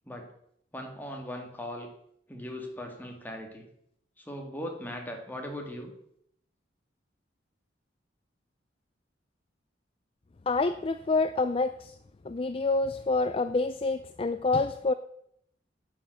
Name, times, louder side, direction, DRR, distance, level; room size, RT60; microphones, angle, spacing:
voice 1, 0.7-1.9 2.3-3.7 4.2-5.9, left 1 dB, 10° left, 2 dB, 1.9 m, -39 dB
voice 2, 10.5-11.9 12.3-14.9, left 3 dB, 30° left, 11 dB, 0.4 m, -27 dB
9.4 x 9.1 x 6.3 m, 0.71 s
head